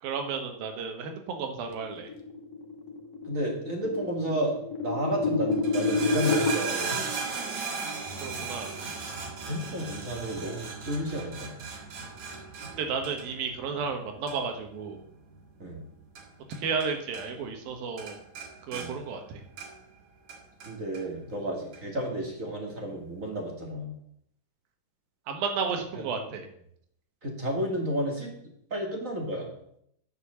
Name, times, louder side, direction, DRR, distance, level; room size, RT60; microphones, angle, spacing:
voice 1, 0.0-2.1 8.2-8.8 12.8-15.0 16.5-18.2 18.7-19.2 25.3-26.5, right 5 dB, 90° right, 4 dB, 3.2 m, -32 dB
sound 1, 1.8-6.5, left 3 dB, 75° left, 1.0 m, -29 dB
voice 2, 3.2-4.5 4.8-7.0 9.5-11.5 15.6-15.8 18.7-18.9 20.6-23.9 25.9-26.0 27.2-28.3 28.7-29.5, equal, 30° right, 1 dB, 1.9 m, -32 dB
sound 2, 5.5-16.9 17.1-17.7 18.0-19.9 20.3-21.0 21.7-21.8, right 5 dB, 55° right, 3.0 m, -37 dB
9.8 x 6.9 x 7.1 m, 0.72 s
omnidirectional pair, 4.0 m